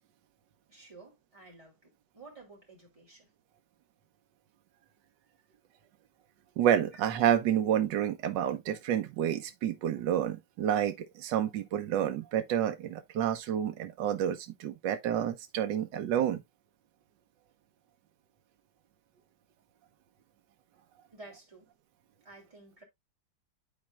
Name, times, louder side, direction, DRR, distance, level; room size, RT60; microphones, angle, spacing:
voice 1, 0.7-3.3 6.9-7.0 21.1-21.7 22.2-22.8, right 3 dB, 20° right, 3.2 m, -52 dB
voice 2, 6.6-16.4, right 10 dB, 80° right, 1.4 m, -29 dB
12.0 x 4.3 x 2.3 m
omnidirectional pair, 1.9 m